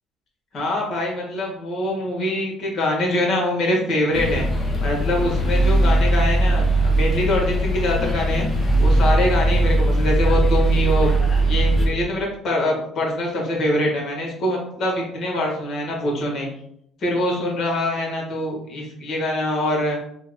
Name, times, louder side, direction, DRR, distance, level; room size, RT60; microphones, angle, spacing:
voice 1, 0.5-4.4 4.8-8.5 8.8-11.1 11.4-16.5 17.0-20.0, left 1 dB, 50° left, -1 dB, 1.3 m, -24 dB
sound 1, 4.1-11.9, right 1 dB, 30° left, 0.7 m, -19 dB
3.3 x 2.1 x 3.4 m, 0.70 s
cardioid pair, 100°, 0 cm